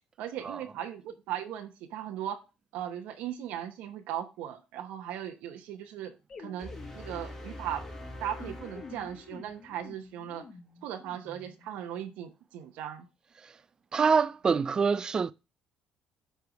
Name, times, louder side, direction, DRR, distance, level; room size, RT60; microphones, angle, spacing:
voice 1, 0.2-2.4 2.7-7.8 8.2-10.4 10.8-13.1, right 10 dB, 85° right, 0.9 m, -38 dB
sound 1, 6.3-11.8, left 4 dB, 35° left, 1.2 m, -49 dB
sound 2, 6.6-9.8, left 1 dB, 20° left, 2.0 m, -44 dB
voice 2, 13.9-15.3, right 5 dB, 30° right, 0.3 m, -25 dB
9.3 x 3.4 x 5.0 m
cardioid pair, 110°, 2 cm